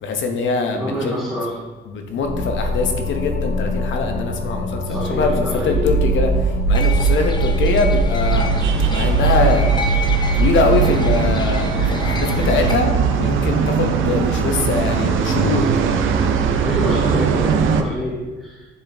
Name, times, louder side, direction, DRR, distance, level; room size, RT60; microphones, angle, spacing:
voice 1, 0.0-1.2 1.9-9.7 10.3-15.7, left 4 dB, 70° left, 4 dB, 0.9 m, -23 dB
voice 2, 0.8-1.6 4.9-6.0 16.6-18.7, equal, 5° right, -9 dB, 1.8 m, -26 dB
sound 1, 2.2-13.0, right 3 dB, 50° left, 1.2 m, -21 dB
sound 2, 6.7-12.7, left 2 dB, 20° left, 0.7 m, -29 dB
sound 3, 8.3-17.8, right 6 dB, 80° right, 0.6 m, -21 dB
7.3 x 4.0 x 3.4 m, 1.3 s
cardioid pair, 90°, 20 cm